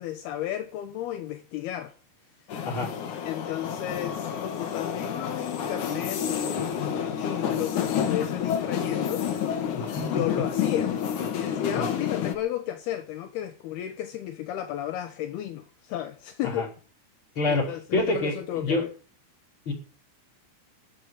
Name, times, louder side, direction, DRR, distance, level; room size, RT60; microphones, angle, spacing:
voice 1, 0.0-1.9 3.2-9.4 9.9-11.0 11.3-16.7 17.5-18.9, left 12 dB, 70° left, 2.5 m, -33 dB
sound 1, 2.5-12.3, left 8 dB, 55° left, 2.4 m, -29 dB
voice 2, 17.4-18.8 19.7-19.8, left 2 dB, 25° left, 5.6 m, -27 dB
14.0 x 8.7 x 9.9 m
omnidirectional pair, 5.8 m